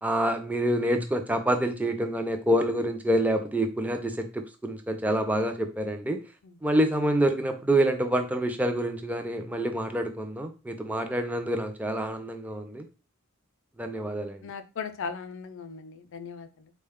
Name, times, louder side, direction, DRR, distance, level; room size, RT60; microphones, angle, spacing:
voice 1, 0.0-6.2 6.6-12.9 13.8-14.4, right 1 dB, 5° right, 6 dB, 0.4 m, -27 dB
voice 2, 14.4-16.7, left 5 dB, 65° left, 11 dB, 0.4 m, -38 dB
3.8 x 2.2 x 3.5 m, 0.31 s
head